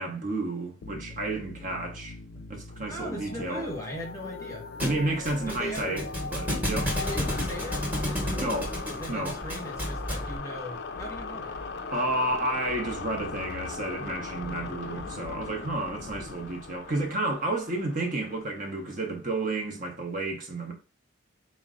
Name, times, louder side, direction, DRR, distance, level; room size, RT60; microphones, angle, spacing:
voice 1, 0.0-2.2 2.5-3.7 4.8-7.0 8.4-8.8 9.1-9.4 11.9-20.7, right 2 dB, 40° right, 0.6 m, -31 dB
sound 1, 0.8-19.3, left 4 dB, 50° left, 0.4 m, -39 dB
voice 2, 2.9-4.6 5.4-6.0 7.0-11.6 14.4-14.7 16.1-16.3, equal, 15° left, 1.0 m, -39 dB
Thump thud, 4.8-10.4, left 1 dB, 10° right, 0.9 m, -32 dB
sound 2, 9.4-10.3 11.0-12.3 12.7-13.8 14.4-16.3, equal, 80° right, 0.7 m, -49 dB
4.3 x 2.0 x 3.6 m
head